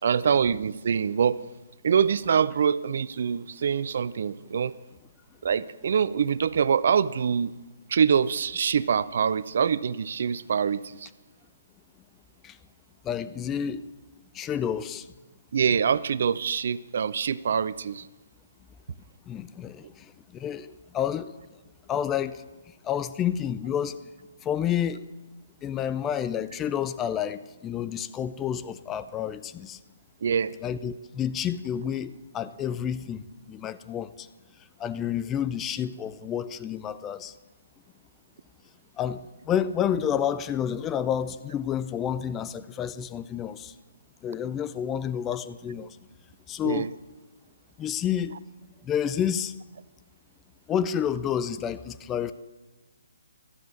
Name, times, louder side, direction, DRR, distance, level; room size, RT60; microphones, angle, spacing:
voice 1, 0.0-1.4 1.8-4.7 5.4-7.5 7.9-11.1 15.5-18.1 30.2-30.5 46.6-46.9, right 7 dB, 55° right, 19 dB, 0.4 m, -24 dB
voice 2, 13.0-13.8 14.3-15.1 19.3-21.3 21.9-22.4 22.8-24.0 24.4-25.1 25.6-29.8 30.6-34.3 34.8-37.3 39.0-43.7 44.2-46.0 46.5-46.9 47.8-48.3 48.8-49.5 50.7-52.3, left 9 dB, 15° left, 14 dB, 0.4 m, -29 dB
13.0 x 8.1 x 7.3 m, 1.1 s
figure-of-eight pair, 135°, 0 cm